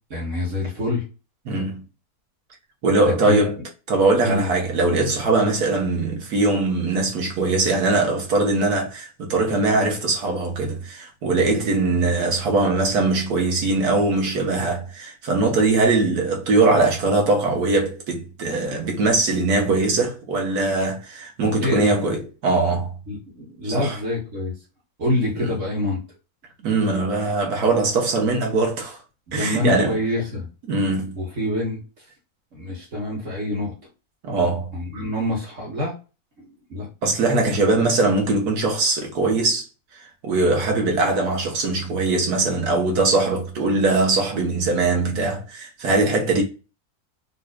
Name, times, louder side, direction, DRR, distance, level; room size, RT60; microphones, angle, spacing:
voice 1, 0.1-1.0 3.0-3.5 4.2-4.5 21.6-22.0 23.1-24.5 25.0-26.0 29.3-30.5 31.2-31.8 32.5-33.7 34.7-35.9 36.4-36.9, left 2 dB, 55° right, 1.6 m, -26 dB
voice 2, 1.5-1.8 2.8-3.6 3.9-23.0 23.6-24.0 25.4-25.5 26.6-29.0 29.3-30.0 30.7-31.2 34.2-34.7 37.0-39.6 40.2-46.4, right 3 dB, 80° right, 1.6 m, -21 dB
4.1 x 3.0 x 2.2 m
omnidirectional pair, 1.6 m